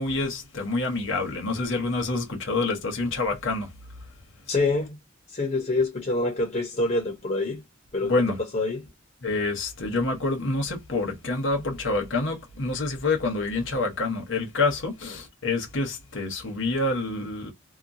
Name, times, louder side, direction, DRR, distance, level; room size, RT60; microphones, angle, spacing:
voice 1, 0.0-3.7 8.0-8.4 9.2-17.5, left 3 dB, 65° left, 0.9 m, -27 dB
voice 2, 4.5-5.0 5.3-7.6 7.9-8.1 8.5-8.8, left 2 dB, 40° left, 0.7 m, -26 dB
2.8 x 2.2 x 2.6 m
head